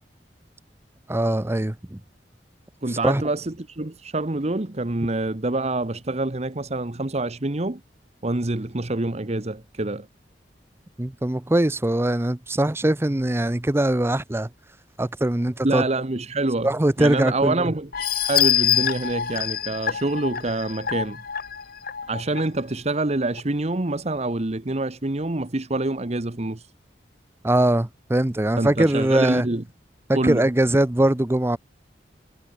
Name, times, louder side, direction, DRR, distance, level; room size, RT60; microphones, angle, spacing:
voice 1, 1.1-2.0 2.9-3.2 11.0-14.5 15.0-15.8 16.6-17.7 27.4-29.5 30.1-31.6, right 1 dB, 15° right, 0.6 m, -21 dB
voice 2, 2.8-7.8 8.2-10.1 15.6-16.7 17.0-21.2 22.1-26.7 28.6-29.6 30.1-30.5, right 2 dB, 40° right, 1.1 m, -26 dB
sound 1, 17.9-22.4 22.9-23.0 23.4-23.5, left 9 dB, 55° left, 1.2 m, -25 dB
head